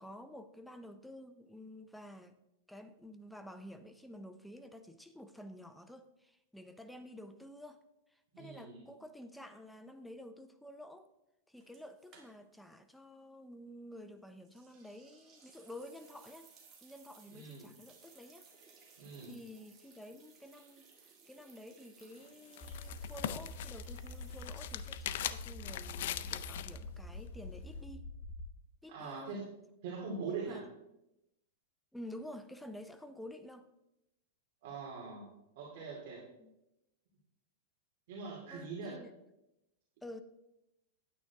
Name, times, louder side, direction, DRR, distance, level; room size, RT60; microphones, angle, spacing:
voice 1, 0.0-2.4 2.7-7.8 8.1-11.1 11.5-16.5 16.8-18.5 19.2-28.1 28.8-29.4 30.4-30.6 31.9-33.7 36.4-36.5 38.5-39.1 40.0-40.2, left 1 dB, ahead, 9 dB, 0.5 m, -50 dB
voice 2, 8.3-8.8 17.3-17.7 19.0-19.4 28.9-29.5 29.8-30.6 34.6-35.2 35.6-36.2 38.1-39.0, right 4 dB, 55° right, -4 dB, 2.5 m, -42 dB
sound 1, 11.6-12.7 13.0-13.1 14.4-25.7, right 5 dB, 25° right, 1.9 m, -62 dB
sound 2, 22.0-26.8, left 12 dB, 65° left, 0.4 m, -41 dB
sound 3, 22.6-28.4, left 2 dB, 30° left, 1.8 m, -45 dB
9.5 x 9.0 x 3.5 m, 0.88 s
supercardioid pair, 150°, 0 cm